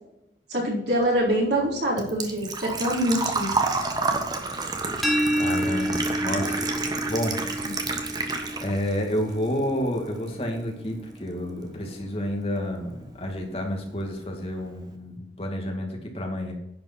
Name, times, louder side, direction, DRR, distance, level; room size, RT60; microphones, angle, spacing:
voice 1, 0.5-3.6 7.6-7.7, right 1 dB, 75° right, -3 dB, 4.1 m, -25 dB
Engine / Trickle dribble / Fill (with liquid), 1.0-9.0 9.3-10.3 10.6-10.7 12.6-12.7 12.9-13.2 13.6-13.7 13.9-14.0, right 3 dB, 20° right, 1.1 m, -29 dB
sound 1, 5.0-10.8, equal, ahead, 0.9 m, -30 dB
voice 2, 5.3-6.6 7.1-7.4 8.0-16.5, equal, 35° left, 1 dB, 2.4 m, -30 dB
10.5 x 5.2 x 6.1 m, 0.82 s
head